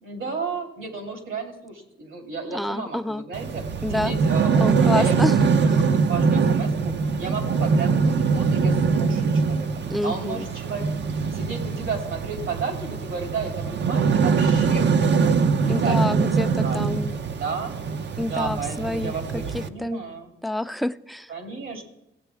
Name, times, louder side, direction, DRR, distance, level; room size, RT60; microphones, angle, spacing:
voice 1, 0.0-3.6 3.9-6.7 7.2-9.7 10.0-10.9 11.3-15.3 15.6-16.0 16.6-17.7 18.2-20.3 21.3-21.8, right 4 dB, 75° right, 3 dB, 2.7 m, -33 dB
voice 2, 2.5-3.2 3.8-4.1 4.6-5.4 9.9-10.5 15.7-17.1 18.2-20.0 20.4-21.3, left 1 dB, ahead, 11 dB, 0.4 m, -28 dB
sound 1, 3.3-19.7, right 5 dB, 60° right, 0.7 m, -23 dB
17.0 x 8.3 x 3.4 m, 0.82 s
cardioid pair, 95°, 20 cm